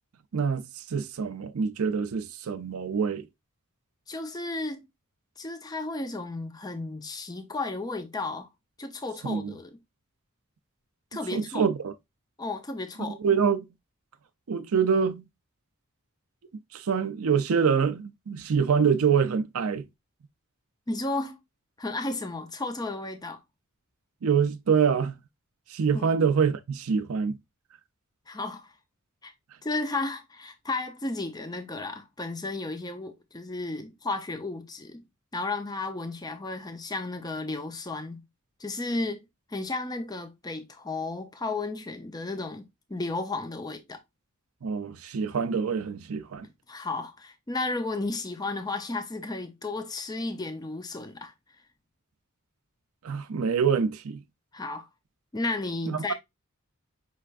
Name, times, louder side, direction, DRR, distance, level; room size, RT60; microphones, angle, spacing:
voice 1, 0.3-3.2 9.2-9.5 11.3-11.9 13.2-13.7 14.5-15.2 16.7-19.8 24.2-25.2 25.7-27.4 44.6-46.5 53.0-54.2 55.9-56.1, right 6 dB, 80° right, 0.5 m, -25 dB
voice 2, 4.1-4.8 5.4-8.5 8.8-9.8 11.1-11.7 12.4-13.2 20.9-21.4 21.8-23.4 25.9-26.1 28.3-28.7 29.2-29.3 29.6-35.0 35.3-38.2 38.6-39.2 39.5-44.0 46.7-51.3 54.5-54.9 55.3-56.1, left 2 dB, 20° left, 0.6 m, -33 dB
5.5 x 3.3 x 2.4 m
head